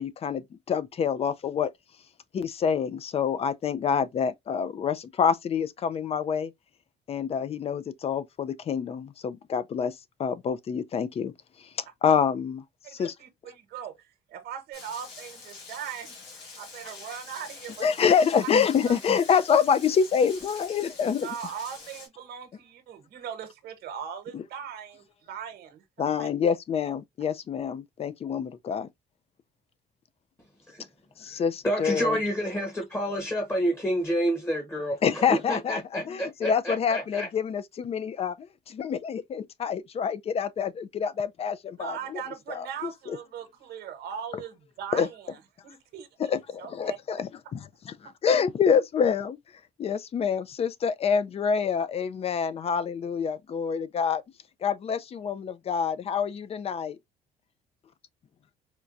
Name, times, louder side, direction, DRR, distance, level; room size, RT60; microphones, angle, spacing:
voice 1, 0.0-1.7 2.3-6.5 7.1-9.9 10.2-11.3 11.6-11.7 12.0-12.6 13.0-13.1 17.8-21.3 24.3-24.4 26.0-28.9 31.2-32.2 35.0-42.2 42.5-43.2 44.9-45.1 46.2-49.4 49.8-54.2 54.6-56.9, left 7 dB, 35° left, 0.5 m, -27 dB
voice 2, 12.8-16.1 16.6-18.1 18.8-19.0 21.2-25.8 26.2-26.3 41.8-46.3 46.6-47.0 48.0-48.1, right 8 dB, 70° right, 1.1 m, -39 dB
Rain, 14.7-22.1, left 4 dB, 85° left, 1.9 m, -45 dB
voice 3, 31.2-37.3, equal, 15° left, 1.1 m, -29 dB
4.4 x 2.3 x 2.5 m
cardioid pair, 110°, 17 cm